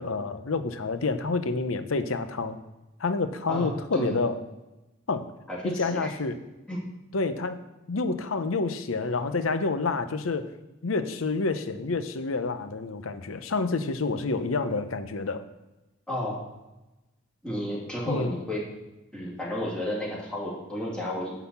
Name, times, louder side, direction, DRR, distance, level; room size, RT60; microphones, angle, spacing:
voice 1, 0.0-2.6 3.0-4.4 5.1-5.3 5.6-6.4 7.1-7.6 7.9-10.5 10.8-15.4 18.1-18.4, left 3 dB, 85° left, 10 dB, 0.7 m, -28 dB
voice 2, 3.5-4.2 5.5-6.1 6.7-6.8 16.1-16.5 17.4-18.6 19.1-21.3, left 1 dB, 5° left, -6 dB, 2.6 m, -32 dB
9.7 x 4.1 x 7.1 m, 1.0 s
head